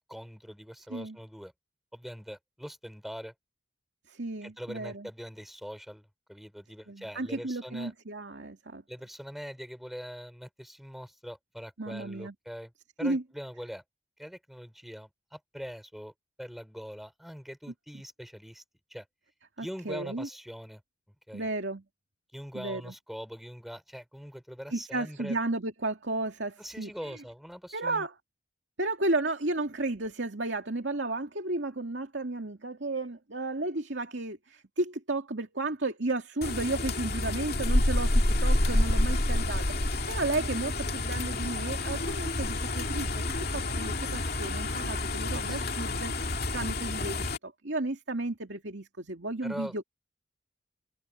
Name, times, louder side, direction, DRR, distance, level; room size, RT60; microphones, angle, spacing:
voice 1, 0.1-1.5 1.9-3.3 4.4-7.9 8.9-12.7 13.0-13.8 14.2-16.1 16.4-18.6 18.9-19.1 19.6-20.8 21.3-21.5 22.3-25.4 26.6-28.1 45.3-45.7 49.4-49.8, equal, ahead, 5.7 m, -42 dB
voice 2, 4.1-5.1 6.9-8.8 11.8-12.3 13.0-13.2 19.6-20.3 21.3-21.8 22.5-22.9 24.7-27.2 27.7-28.1 28.8-47.2 47.4-49.8, right 2 dB, 70° right, 2.4 m, -33 dB
sound 1, 36.4-47.4, left 1 dB, 50° left, 2.6 m, -29 dB
head